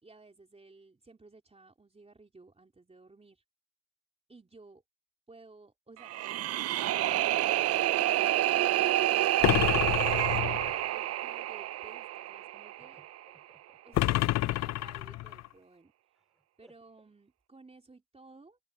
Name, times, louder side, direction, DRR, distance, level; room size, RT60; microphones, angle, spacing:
voice 1, 0.0-3.4 4.3-4.8 5.3-9.9 10.8-13.0 13.8-15.9 16.6-18.6, right 3 dB, 20° right, 3.7 m, -56 dB
sound 1, 6.0-13.1, right 14 dB, 55° right, 0.4 m, -28 dB
sound 2, 9.4-10.9 13.9-15.5, left 16 dB, 60° left, 0.4 m, -28 dB
voice 2, 10.6-11.1 12.8-13.8 16.2-16.7, equal, ahead, 4.3 m, -65 dB
cardioid pair, 90°, 30 cm